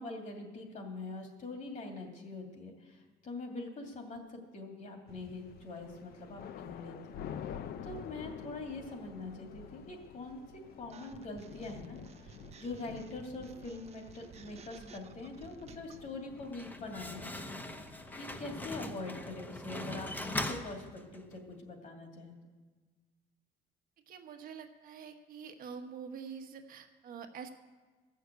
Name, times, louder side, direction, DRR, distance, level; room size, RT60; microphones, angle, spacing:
voice 1, 0.0-7.5 7.8-17.5 18.1-22.4, left 2 dB, 45° left, 2 dB, 2.5 m, -44 dB
sound 1, 5.1-18.6, left 8 dB, 65° left, 0.7 m, -49 dB
sound 2, 10.9-16.0, right 6 dB, 40° right, 0.8 m, -54 dB
Slam, 16.3-21.4, left 1 dB, 10° left, 0.8 m, -41 dB
voice 2, 24.1-27.5, right 6 dB, 55° right, 6 dB, 1.2 m, -46 dB
13.5 x 6.5 x 8.1 m, 1.3 s
cardioid pair, 110°, 17 cm